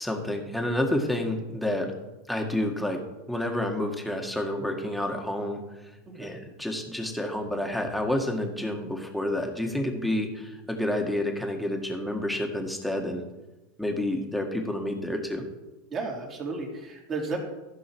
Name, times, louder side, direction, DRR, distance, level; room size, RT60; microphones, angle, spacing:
voice 1, 0.0-1.9 2.3-3.0 3.3-5.6 6.1-13.2 13.8-15.4, left 1 dB, ahead, 2 dB, 1.7 m, -29 dB
voice 2, 15.9-17.4, right 3 dB, 35° right, 0 dB, 3.2 m, -33 dB
14.5 x 5.6 x 4.6 m, 1.1 s
hypercardioid pair, 100°, 0 cm